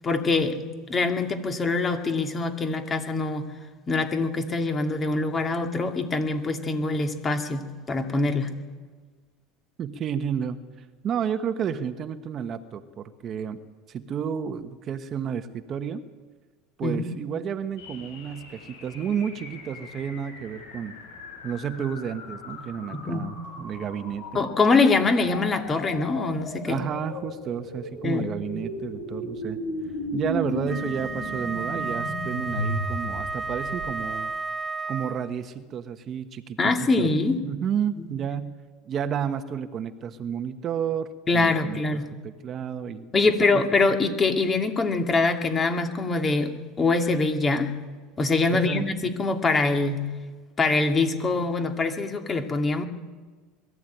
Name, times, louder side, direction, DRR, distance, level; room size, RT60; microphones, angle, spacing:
voice 1, 0.0-0.6 0.9-3.5 3.9-8.5 16.8-17.0 22.9-23.3 24.3-26.8 28.0-28.3 36.6-37.4 38.0-38.1 41.3-42.1 43.1-47.7 48.2-50.0 50.6-52.8, left 3 dB, 25° left, 6 dB, 2.4 m, -24 dB
voice 2, 9.8-10.6 11.0-13.6 13.9-16.0 16.8-20.9 21.4-24.4 26.7-29.6 30.1-34.3 34.9-37.1 37.4-38.5 38.9-41.8 42.2-43.1 43.5-43.6 48.5-48.9, right 8 dB, 40° right, 9 dB, 1.3 m, -31 dB
sound 1, 17.8-34.1, left 1 dB, 85° left, 7.8 m, -36 dB
Wind instrument woodwind instrument, 30.7-35.4, right 4 dB, 15° right, 0.9 m, -32 dB
22.0 x 14.0 x 9.3 m, 1.4 s
supercardioid pair, 120°, 0 cm